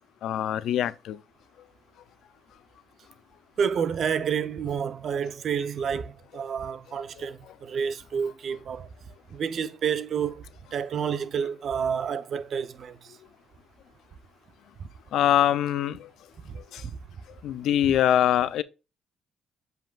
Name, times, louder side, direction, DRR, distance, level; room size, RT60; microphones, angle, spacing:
voice 1, 0.2-1.2 7.2-7.3 15.1-16.1 16.6-16.8 17.4-18.6, left 11 dB, 80° left, 0.4 m, -24 dB
voice 2, 3.6-8.9 9.3-10.4 10.7-13.2 16.4-17.0, right 7 dB, 60° right, 0.6 m, -29 dB
7.7 x 5.2 x 2.4 m
cardioid pair, 90°, 0 cm